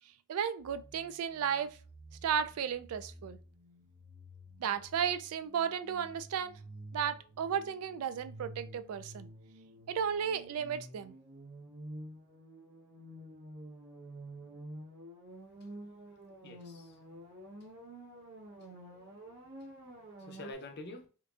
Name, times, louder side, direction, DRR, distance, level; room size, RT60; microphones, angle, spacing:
voice 1, 0.3-1.8 2.2-3.4 4.6-6.6 6.9-9.3 9.9-11.1, right 8 dB, 75° right, 0.3 m, -34 dB
sound 1, 0.6-20.5, right 1 dB, 55° right, 0.9 m, -50 dB
voice 2, 16.4-17.0 17.6-17.9 18.8-19.1 20.3-21.1, left 2 dB, 50° left, 0.6 m, -47 dB
4.4 x 2.5 x 2.4 m
head